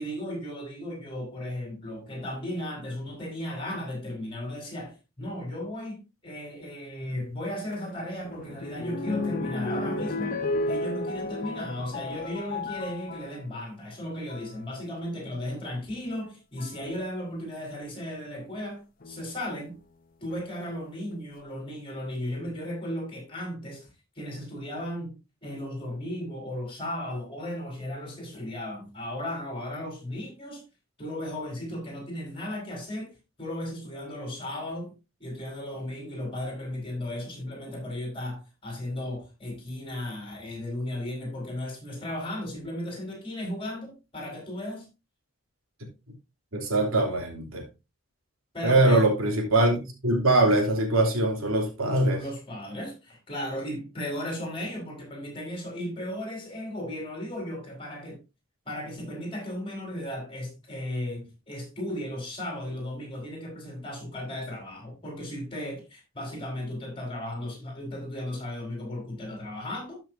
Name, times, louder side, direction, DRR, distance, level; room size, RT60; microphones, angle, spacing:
voice 1, 0.0-19.8 20.2-23.9 24.1-25.2 25.4-30.6 31.0-34.9 35.2-44.9 48.5-49.1 52.0-58.2 58.6-70.0, left 1 dB, 25° left, 4.5 m, -35 dB
sound 1, 7.7-13.4 14.1-14.5 15.8-15.9 16.6-16.9 19.0-19.6 20.3-20.4 20.6-20.7, left 2 dB, 40° left, 0.7 m, -33 dB
voice 2, 46.5-47.6 48.6-52.2, right 2 dB, 85° right, 3.0 m, -22 dB
13.0 x 6.0 x 2.7 m
head